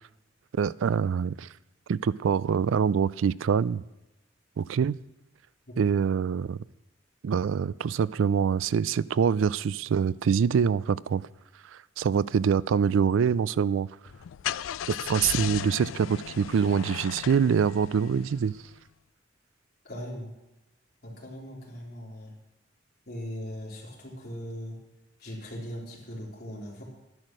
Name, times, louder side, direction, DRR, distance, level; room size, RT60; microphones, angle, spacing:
voice 1, 0.6-1.5 1.9-3.8 4.6-5.0 5.8-6.6 7.2-11.2 12.0-13.9 14.9-18.5, right 6 dB, 85° right, 0.4 m, -25 dB
Car / Engine starting, 14.1-18.7, left 10 dB, 90° left, 0.3 m, -36 dB
voice 2, 19.8-20.3 21.0-22.3 23.1-24.8 25.2-26.8, equal, 50° left, 3.8 m, -39 dB
12.0 x 10.5 x 6.2 m
head